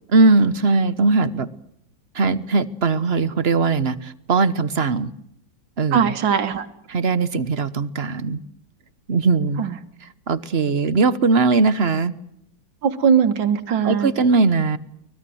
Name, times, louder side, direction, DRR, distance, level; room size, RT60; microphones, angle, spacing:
voice 1, 0.1-1.5 2.1-5.1 5.8-6.1 6.9-8.4 9.1-9.6 10.0-12.1 13.8-14.8, right 3 dB, 40° right, 14 dB, 1.1 m, -19 dB
voice 2, 5.9-6.7 9.6-9.7 12.8-14.1, right 7 dB, 85° right, 8 dB, 2.2 m, -19 dB
24.0 x 20.5 x 7.8 m, 0.76 s
omnidirectional pair, 2.1 m